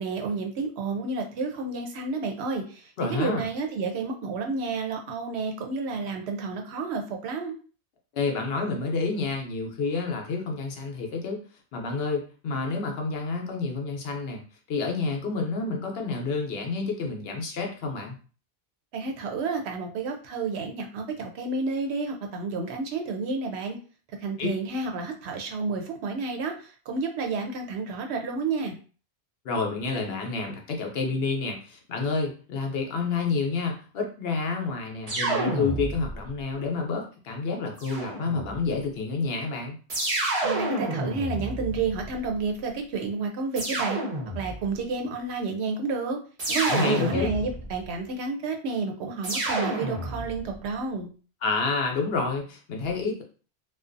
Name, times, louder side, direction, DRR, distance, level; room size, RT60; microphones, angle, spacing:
voice 1, 0.0-7.5 18.9-23.8 24.2-28.8 40.4-44.0 44.4-46.2 46.5-51.1, right 4 dB, 80° right, 3 dB, 0.9 m, -30 dB
voice 2, 3.0-3.5 8.1-11.4 11.7-14.4 14.7-18.1 24.4-24.5 29.4-39.8 46.7-47.3 51.4-53.2, left 4 dB, 70° left, 2 dB, 0.8 m, -29 dB
sound 1, 35.1-36.3 37.8-38.6 39.9-42.2 43.6-44.7 46.4-47.7 49.2-50.5, right 1 dB, 40° right, 0.7 m, -29 dB
2.5 x 2.2 x 2.5 m, 0.38 s
omnidirectional pair, 1.1 m